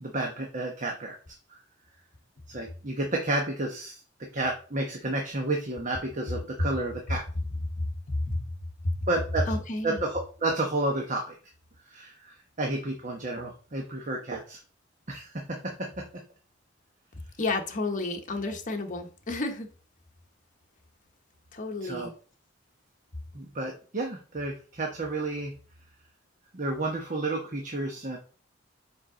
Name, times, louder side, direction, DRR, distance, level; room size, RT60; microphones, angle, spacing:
voice 1, 0.0-1.2 2.5-4.0 4.3-7.2 9.1-9.5 9.8-11.4 11.9-14.6 15.1-16.0 21.8-22.1 23.3-25.6 26.5-28.2, right 2 dB, 40° right, 1.0 m, -31 dB
voice 2, 7.8-8.4 8.8-8.9 9.5-10.0 17.4-19.7 21.5-22.1, left 2 dB, 40° left, 1.1 m, -31 dB
5.3 x 4.6 x 4.9 m
head